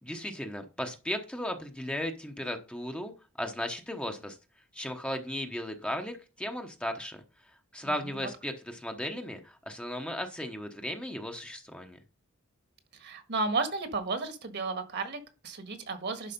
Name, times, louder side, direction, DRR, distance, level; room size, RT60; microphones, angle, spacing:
voice 1, 0.0-3.1 3.4-4.4 4.7-7.2 7.7-12.0, left 1 dB, 5° left, 4 dB, 0.9 m, -36 dB
voice 2, 7.8-8.2 13.0-16.3, right 3 dB, 55° right, 8 dB, 1.6 m, -33 dB
11.0 x 4.7 x 5.2 m, 0.32 s
head